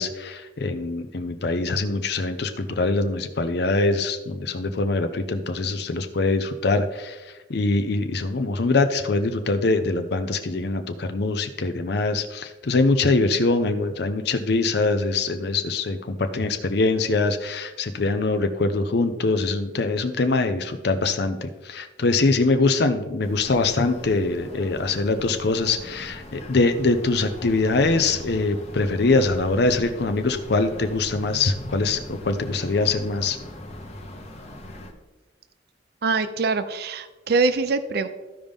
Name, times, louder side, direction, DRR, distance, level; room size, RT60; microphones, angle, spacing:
voice 1, 0.0-33.4, left 3 dB, 55° left, 8 dB, 0.5 m, -23 dB
sound 1, 23.2-34.9, left 1 dB, 35° left, 1.0 m, -39 dB
voice 2, 36.0-38.1, right 4 dB, 55° right, 11 dB, 0.5 m, -23 dB
14.0 x 5.2 x 3.5 m, 1.2 s
head